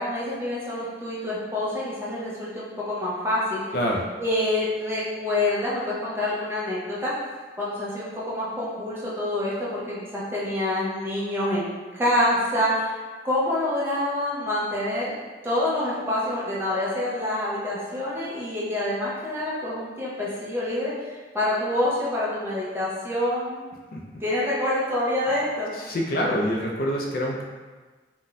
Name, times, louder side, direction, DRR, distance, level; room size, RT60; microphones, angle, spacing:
voice 1, 0.0-3.6 4.2-7.1 7.6-13.0 13.2-15.1 15.4-23.7 24.2-25.7, left 1 dB, 15° right, -7 dB, 0.6 m, -27 dB
voice 2, 3.7-4.1 23.9-24.0 25.2-25.4 25.7-27.4, equal, 50° left, -1 dB, 0.3 m, -26 dB
2.5 x 2.2 x 3.8 m, 1.3 s
head